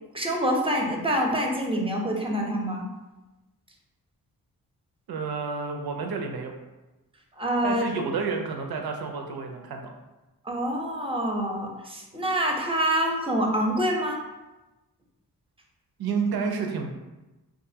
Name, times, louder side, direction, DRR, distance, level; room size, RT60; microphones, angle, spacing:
voice 1, 0.1-2.9 7.4-7.8 10.5-14.2, equal, 15° right, 0 dB, 0.6 m, -26 dB
voice 2, 5.1-6.5 7.6-9.9 16.0-16.9, right 5 dB, 65° right, 3 dB, 0.6 m, -30 dB
2.6 x 2.4 x 2.7 m, 1.1 s
supercardioid pair, 40°, 41 cm